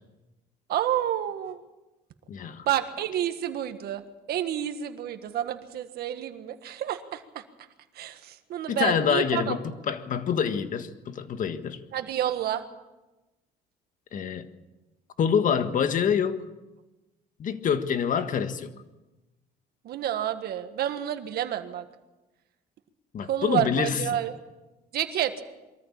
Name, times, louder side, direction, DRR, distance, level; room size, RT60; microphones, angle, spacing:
voice 1, 0.7-1.6 2.6-4.0 4.3-7.4 7.9-9.6 11.9-12.6 19.8-21.8 23.2-24.3 24.9-25.4, right 11 dB, 65° right, 8 dB, 1.7 m, -29 dB
voice 2, 2.3-2.7 8.7-11.8 14.1-14.4 15.2-16.4 17.4-18.7 23.1-24.1, left 7 dB, 50° left, 10 dB, 1.6 m, -26 dB
23.0 x 14.0 x 8.7 m, 1.1 s
cardioid pair, 110°, 17 cm